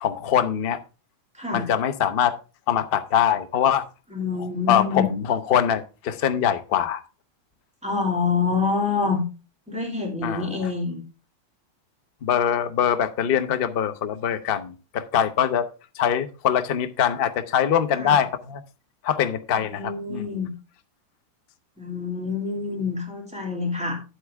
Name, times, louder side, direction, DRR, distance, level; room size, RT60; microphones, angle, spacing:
voice 1, 0.0-0.8 1.5-2.3 2.7-3.9 4.7-7.0 10.2-10.5 12.2-15.7 16.0-18.6 19.0-20.3, left 9 dB, 70° left, 9 dB, 0.5 m, -23 dB
voice 2, 1.4-1.7 4.1-5.1 7.8-9.2 9.7-11.0 17.9-18.2 19.5-20.5 21.8-24.0, left 4 dB, 5° right, 0 dB, 2.6 m, -26 dB
9.5 x 8.1 x 3.4 m, 0.32 s
omnidirectional pair, 2.3 m